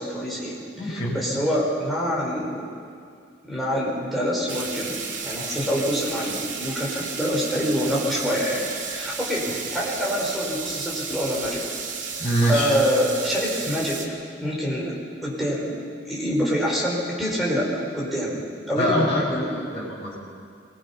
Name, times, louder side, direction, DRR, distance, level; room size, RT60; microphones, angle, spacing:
voice 1, 0.0-2.6 3.4-11.6 12.5-14.0 14.4-14.9 15.2-19.5, equal, ahead, -5 dB, 4.8 m, -26 dB
voice 2, 0.8-1.2 12.2-12.8 18.8-20.2, equal, 30° left, -6 dB, 5.6 m, -24 dB
sound 1, 4.5-14.1, right 5 dB, 80° right, 2.2 m, -33 dB
24.0 x 21.0 x 5.7 m, 2.3 s
head